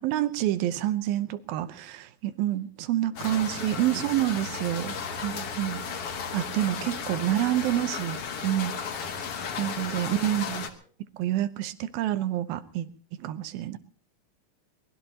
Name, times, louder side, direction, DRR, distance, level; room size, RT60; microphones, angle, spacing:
voice 1, 0.0-4.9 5.2-5.8 6.3-8.8 9.6-10.7 11.2-12.9 13.2-13.8, right 13 dB, 85° right, 12 dB, 2.7 m, -28 dB
voice 2, 2.6-3.1 12.6-12.8, equal, 80° left, -1 dB, 8.8 m, -58 dB
sound 1, 3.2-10.7, left 6 dB, 55° left, 1.9 m, -34 dB
23.5 x 20.5 x 3.0 m, 0.42 s
omnidirectional pair, 4.2 m